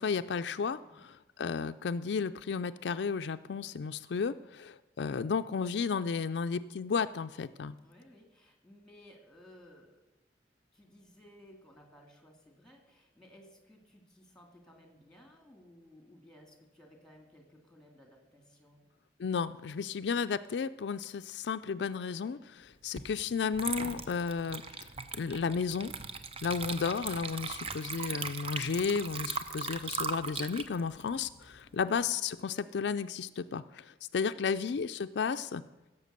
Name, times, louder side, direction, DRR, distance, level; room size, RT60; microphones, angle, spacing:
voice 1, 0.0-7.8 19.2-24.6 25.2-25.9 26.4-35.6, left 5 dB, 70° left, 10 dB, 0.4 m, -33 dB
voice 2, 0.8-1.1 7.8-10.0 10.7-18.9 31.6-31.9, equal, 5° left, 3 dB, 2.3 m, -58 dB
Water / Liquid, 23.0-23.1 23.5-32.1, right 5 dB, 30° right, 0.7 m, -39 dB
16.0 x 7.1 x 6.7 m, 1.1 s
head